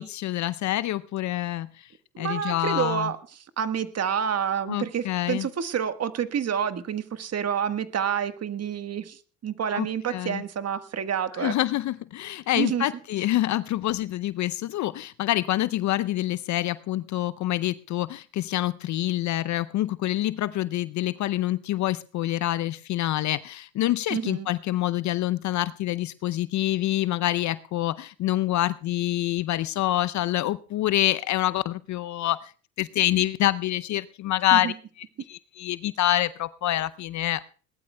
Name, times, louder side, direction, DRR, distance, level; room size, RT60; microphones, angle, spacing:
voice 1, 0.0-1.9 2.2-3.1 4.7-5.5 9.7-10.4 11.4-32.5 32.8-34.7 35.3-37.4, left 14 dB, 40° left, 16 dB, 0.6 m, -26 dB
voice 2, 2.1-3.2 3.6-11.5 12.6-12.8 24.1-24.5 34.5-34.7, right 8 dB, 35° right, 10 dB, 1.4 m, -28 dB
21.0 x 19.0 x 2.2 m, 0.42 s
hypercardioid pair, 70°, 46 cm